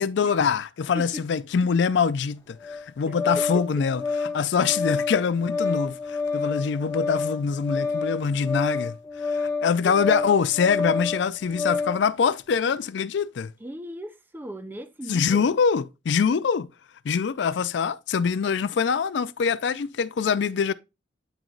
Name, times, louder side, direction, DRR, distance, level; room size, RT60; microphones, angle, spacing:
voice 1, 0.0-13.5 15.1-16.7 17.0-20.7, left 6 dB, 70° left, 0.4 m, -24 dB
voice 2, 0.9-1.2 1.6-1.7 3.4-3.8 9.8-10.0 13.6-15.5 19.5-19.6, equal, 10° right, 0.5 m, -37 dB
Organ, 2.6-12.0, left 4 dB, 20° left, 0.8 m, -29 dB
8.8 x 3.0 x 3.8 m
head